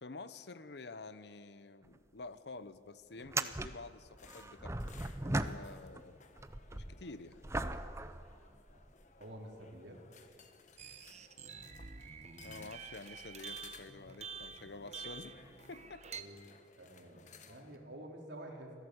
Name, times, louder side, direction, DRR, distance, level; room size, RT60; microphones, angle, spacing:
voice 1, 0.0-4.9 5.2-6.2 6.7-7.5 12.4-15.4 15.7-16.0, left 3 dB, 65° left, 14 dB, 0.9 m, -49 dB
sound 1, 1.8-2.0 2.3-2.4 3.2-6.0 6.4-9.0 9.7-9.8 14.0-14.1 15.5-15.6, right 2 dB, 15° right, 0.7 m, -39 dB
sound 2, 4.2-17.8, left 5 dB, 45° left, 1.3 m, -60 dB
voice 2, 9.2-10.0 16.1-18.7, right 1 dB, 65° right, 0 dB, 4.4 m, -50 dB
sound 3, 10.8-16.2, right 6 dB, 40° right, 1.1 m, -48 dB
26.0 x 16.5 x 8.0 m, 2.2 s
head